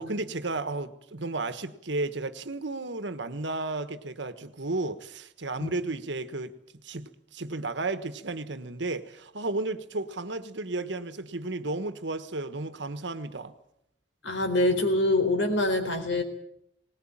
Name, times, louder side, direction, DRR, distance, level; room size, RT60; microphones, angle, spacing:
voice 1, 0.0-6.5 6.8-13.5, right 2 dB, 70° right, 1.4 m, -33 dB
voice 2, 14.2-16.2, left 2 dB, 85° left, 4.2 m, -25 dB
20.0 x 19.5 x 8.8 m
head